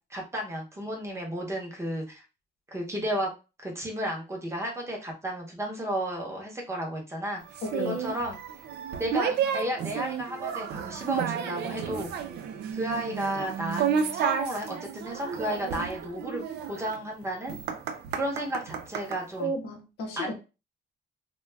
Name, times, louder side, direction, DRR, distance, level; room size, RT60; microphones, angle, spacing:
voice 1, 0.1-2.2 2.7-3.3 3.6-7.4 7.8-8.4 9.0-12.1 12.7-17.6 18.1-19.5 20.2-20.3, right 1 dB, 15° right, 0.7 m, -33 dB
sound 1, 7.5-19.2, right 7 dB, 90° right, 0.4 m, -32 dB
voice 2, 7.6-8.0 19.4-20.3, equal, 80° left, 0.7 m, -33 dB
2.2 x 2.1 x 3.2 m
cardioid pair, 155°, 17 cm